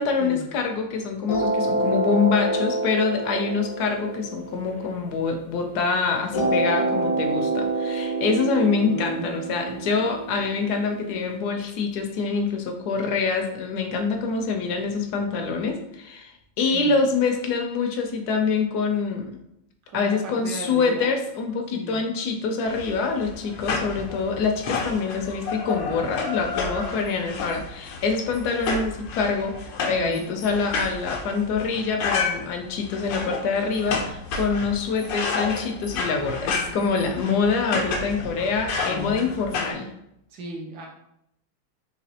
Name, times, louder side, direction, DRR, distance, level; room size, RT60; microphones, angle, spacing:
voice 1, 0.0-19.3 19.9-29.5 29.9-39.9, left 4 dB, 70° left, 4 dB, 1.0 m, -25 dB
sound 1, 1.3-5.7 6.3-11.3, right 2 dB, 55° left, 0.6 m, -27 dB
voice 2, 8.8-10.0 16.7-16.9 19.9-21.2 21.7-22.0 29.9-30.3 38.9-39.9 40.3-40.9, right 1 dB, 70° right, -1 dB, 1.3 m, -38 dB
sound 2, 22.7-39.7, left 4 dB, 90° left, 1.4 m, -31 dB
4.0 x 2.8 x 2.8 m, 0.78 s
omnidirectional pair, 1.9 m